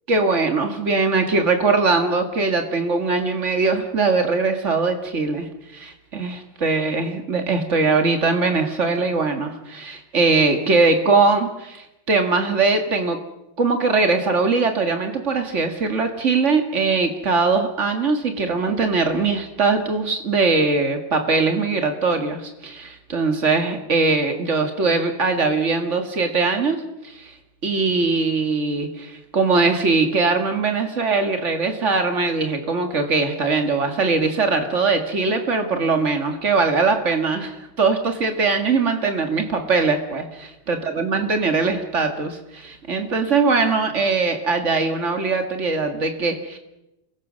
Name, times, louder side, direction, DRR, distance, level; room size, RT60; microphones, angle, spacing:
voice 1, 0.1-13.2 13.6-26.8 27.0-27.3 27.6-46.6, right 4 dB, 80° right, 5 dB, 0.6 m, -21 dB
29.0 x 22.0 x 6.4 m, 0.91 s
omnidirectional pair, 4.6 m